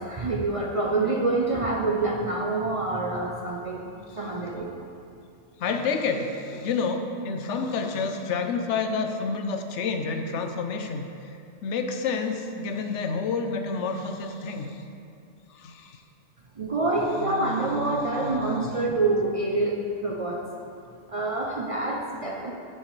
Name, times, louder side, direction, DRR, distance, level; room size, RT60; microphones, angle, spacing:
voice 1, 0.0-4.7 16.6-20.5 21.1-22.5, right 2 dB, 45° right, -1 dB, 0.4 m, -27 dB
voice 2, 5.6-11.1 11.6-14.8 15.5-16.0 17.2-18.7, left 4 dB, 80° left, 5 dB, 1.0 m, -29 dB
10.0 x 6.5 x 3.2 m, 2.5 s
omnidirectional pair, 1.2 m